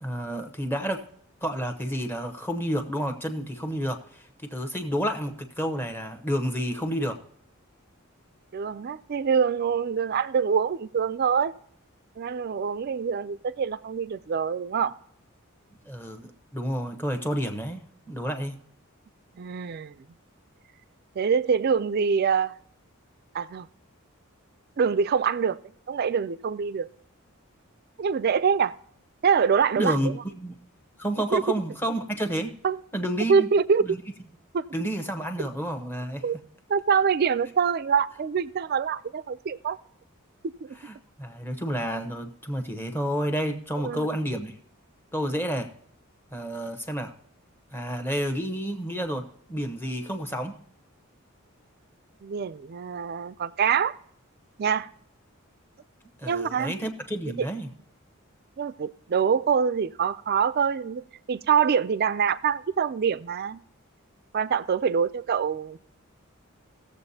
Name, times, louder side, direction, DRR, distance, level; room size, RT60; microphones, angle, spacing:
voice 1, 0.0-1.0 1.4-7.2 15.9-18.6 29.8-30.1 30.4-30.5 31.0-32.5 32.9-33.5 33.8-34.0 34.7-36.2 40.8-44.6 45.1-45.7 46.3-47.1 47.7-50.6 56.2-57.7, equal, 10° left, 0.9 m, -30 dB
voice 2, 8.5-11.5 12.2-14.9 19.4-19.9 21.2-22.5 23.3-23.7 24.8-25.6 25.9-26.9 28.0-28.8 29.2-30.1 31.3-31.4 32.6-32.8 33.3-33.9 34.5-34.6 35.4-35.5 36.2-36.4 36.7-39.8 40.6-40.8 43.8-44.1 52.2-53.9 54.6-54.9 56.2-56.7 58.6-61.0 61.3-63.6 64.3-65.8, right 6 dB, 45° right, 0.4 m, -25 dB
18.5 x 7.3 x 2.8 m
head